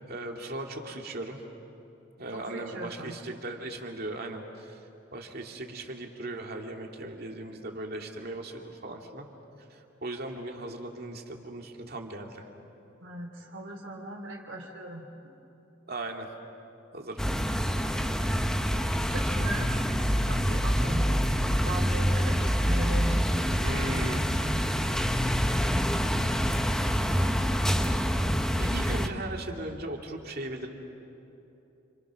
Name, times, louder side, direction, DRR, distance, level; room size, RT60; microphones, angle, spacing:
voice 1, 0.1-1.4 2.2-4.8 5.1-9.3 9.7-12.5 15.9-16.3 16.9-17.2 23.0-23.2 23.6-24.3 28.6-30.7, right 2 dB, 55° right, 2 dB, 2.5 m, -38 dB
voice 2, 2.3-3.2 13.0-15.3 19.0-19.7 20.3-21.3 21.6-23.6, right 1 dB, 80° right, 0 dB, 3.3 m, -38 dB
sound 1, 17.2-29.1, equal, 5° left, 1.0 m, -26 dB
29.5 x 27.0 x 6.3 m, 2.9 s
head